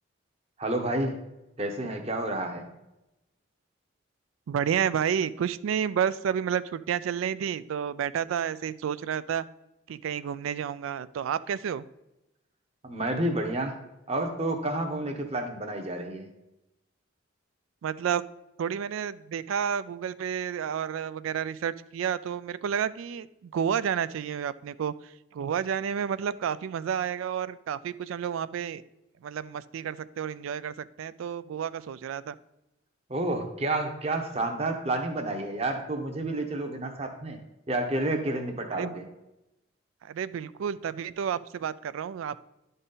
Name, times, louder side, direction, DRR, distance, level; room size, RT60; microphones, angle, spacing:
voice 1, 0.6-1.2 1.6-2.7 12.8-13.8 14.1-16.3 33.1-37.4 37.7-39.0, right 2 dB, 30° right, 5 dB, 0.8 m, -30 dB
voice 2, 4.5-9.4 9.9-11.8 17.8-18.3 18.6-28.8 29.2-32.4 38.8-38.9 40.0-42.5, right 8 dB, 85° right, 16 dB, 0.3 m, -30 dB
11.0 x 4.0 x 3.8 m, 0.93 s
head